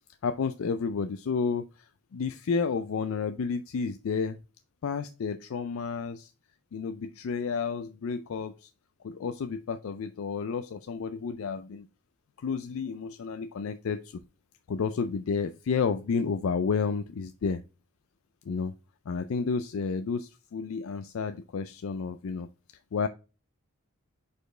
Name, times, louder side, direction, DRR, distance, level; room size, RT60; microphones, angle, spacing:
voice 1, 0.2-4.4 4.8-6.3 6.7-8.7 9.0-11.9 12.4-14.2 14.7-17.6 18.5-18.7 19.1-22.5 22.9-23.1, left 5 dB, 65° left, 10 dB, 0.4 m, -31 dB
5.1 x 4.3 x 4.3 m, 0.31 s
head